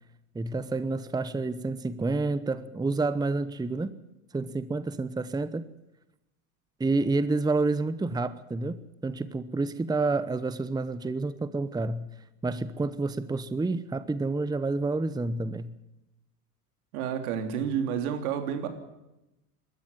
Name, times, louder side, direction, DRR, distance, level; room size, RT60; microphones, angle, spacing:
voice 1, 0.3-3.9 4.3-5.7 6.8-12.1 12.4-15.7, right 3 dB, 10° right, 14 dB, 0.9 m, -29 dB
voice 2, 16.9-18.7, right 8 dB, 75° right, 7 dB, 3.4 m, -30 dB
20.5 x 13.5 x 9.8 m, 0.95 s
hypercardioid pair, 85°, 44 cm